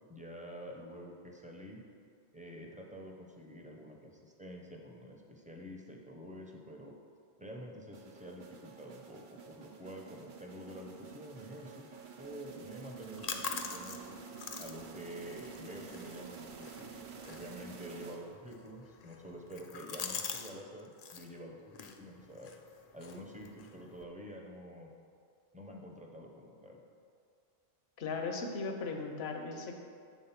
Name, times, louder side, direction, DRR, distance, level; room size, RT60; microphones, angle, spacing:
voice 1, 0.1-1.8 2.3-6.9 7.4-11.9 12.2-14.2 14.6-22.5 22.9-24.9 25.5-26.8, equal, 10° right, 0 dB, 0.5 m, -48 dB
sound 1, 7.9-18.6, right 6 dB, 55° right, 0.7 m, -50 dB
sound 2, 12.8-20.5 20.8-21.3 21.7-24.0, left 5 dB, 55° left, 0.4 m, -45 dB
voice 2, 28.0-29.8, left 4 dB, 75° left, 4 dB, 0.9 m, -37 dB
7.2 x 3.6 x 5.7 m, 2.3 s
omnidirectional pair, 1.1 m